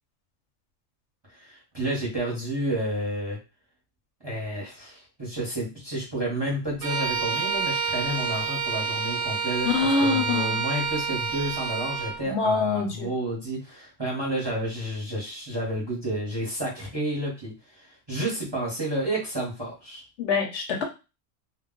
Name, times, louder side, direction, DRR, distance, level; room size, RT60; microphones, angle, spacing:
voice 1, 1.3-3.4 4.2-20.0, right 1 dB, 25° right, -4 dB, 0.7 m, -30 dB
Bowed string instrument, 6.8-12.2, right 5 dB, 65° right, 0.8 m, -28 dB
voice 2, 9.6-10.6 12.3-13.1 20.2-20.8, left 4 dB, 65° left, 2 dB, 0.8 m, -25 dB
2.2 x 2.0 x 3.6 m, 0.29 s
omnidirectional pair, 1.3 m